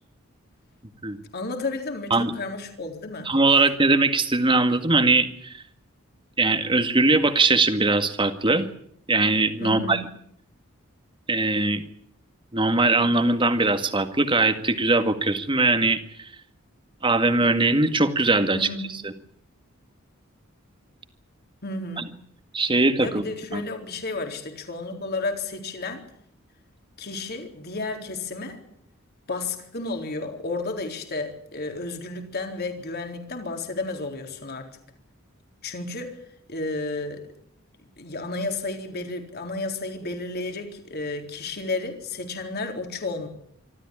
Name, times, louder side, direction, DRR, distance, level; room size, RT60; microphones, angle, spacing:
voice 1, 1.3-3.3 9.6-10.0 18.5-18.9 21.6-22.1 23.0-26.0 27.0-28.6 29.3-34.7 35.6-36.2 36.5-37.2 38.0-43.3, left 3 dB, 50° left, 4 dB, 4.0 m, -32 dB
voice 2, 3.3-5.6 6.4-8.7 9.1-10.0 11.3-11.8 12.5-16.3 17.0-18.7 19.0-19.1 22.0-22.1 22.5-23.2 23.5-23.7, right 3 dB, 25° right, 8 dB, 2.0 m, -21 dB
26.0 x 13.5 x 10.0 m, 0.67 s
head